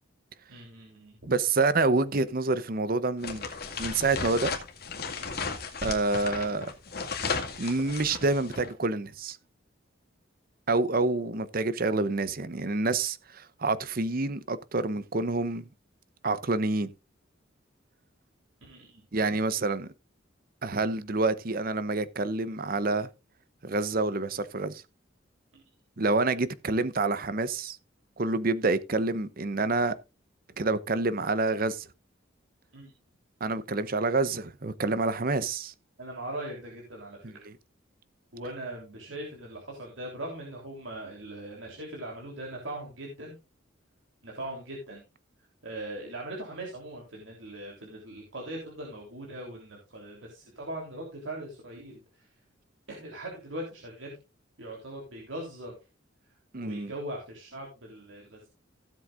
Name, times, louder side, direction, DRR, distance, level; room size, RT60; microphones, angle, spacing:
voice 1, 0.5-1.2 18.6-19.0 25.5-25.6 32.7-32.9 36.0-37.4 38.3-43.4 44.2-45.0 45.6-52.3 52.9-54.2 54.6-55.8 56.6-58.5, right 1 dB, 75° right, 3.4 m, -40 dB
voice 2, 1.2-3.4 3.8-4.5 5.8-6.7 7.6-9.4 10.7-15.6 16.2-16.9 19.1-19.9 20.6-23.1 23.6-24.8 26.0-27.8 28.2-30.0 30.6-31.9 33.4-35.7 37.2-37.3 56.5-56.9, right 3 dB, 50° right, 0.8 m, -27 dB
sound 1, 3.2-8.7, left 4 dB, 50° left, 2.1 m, -35 dB
16.0 x 7.7 x 2.5 m
head